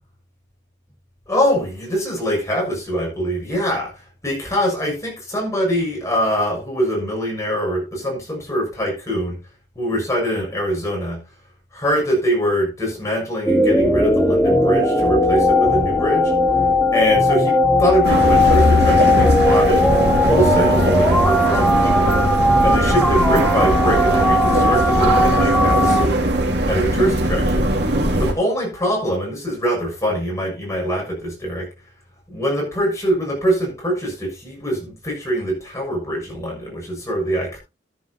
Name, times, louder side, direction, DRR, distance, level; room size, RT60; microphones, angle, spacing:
voice 1, 1.3-9.4 9.8-11.2 11.7-16.3 16.9-19.9 20.2-22.2 22.6-26.2 26.6-27.6 28.2-31.7 32.3-37.6, equal, 15° left, 6.9 m, -23 dB
sound 1, 13.5-26.1, left 1 dB, ahead, 2.2 m, -17 dB
sound 2, 18.0-28.3, right 1 dB, 65° right, 2.8 m, -19 dB
14.5 x 9.6 x 2.9 m
head